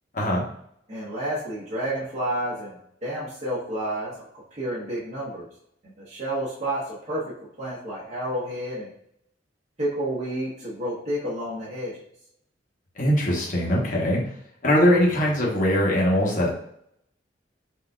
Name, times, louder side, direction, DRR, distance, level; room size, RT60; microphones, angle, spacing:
voice 1, 0.9-4.1 4.5-5.5 5.8-7.2 7.6-8.9 9.8-11.9, right 1 dB, 35° right, -9 dB, 1.2 m, -30 dB
voice 2, 13.0-14.2 14.6-16.5, equal, 45° left, -3 dB, 1.1 m, -21 dB
5.8 x 2.8 x 2.4 m, 0.71 s
head